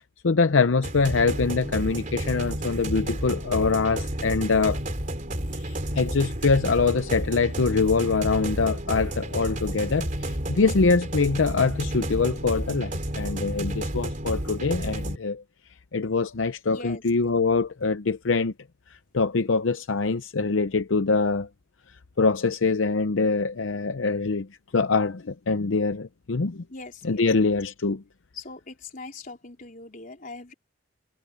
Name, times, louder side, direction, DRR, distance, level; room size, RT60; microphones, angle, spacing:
voice 1, 0.2-4.8 5.5-15.4 15.9-18.5 19.1-21.5 22.2-24.5 24.7-26.6 27.0-28.0, left 4 dB, 75° left, 0.7 m, -24 dB
sound 1, 0.8-15.1, right 1 dB, 40° right, 3.6 m, -31 dB
voice 2, 16.7-17.0 26.7-27.2 28.3-30.5, left 3 dB, 45° left, 4.3 m, -41 dB
head